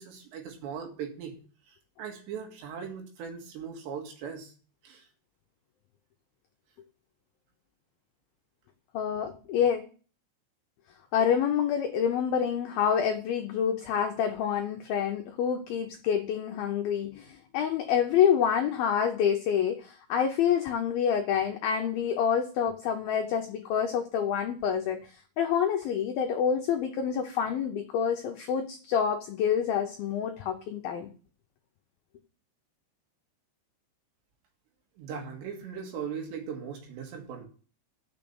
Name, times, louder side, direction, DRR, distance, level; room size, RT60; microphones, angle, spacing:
voice 1, 0.0-1.4 1.7-4.5 4.8-5.1 35.0-37.5, right 7 dB, 70° right, 2 dB, 3.9 m, -39 dB
voice 2, 8.9-9.8 11.1-31.1, left 8 dB, 85° left, 4 dB, 2.1 m, -27 dB
9.0 x 6.7 x 7.0 m, 0.40 s
omnidirectional pair, 5.4 m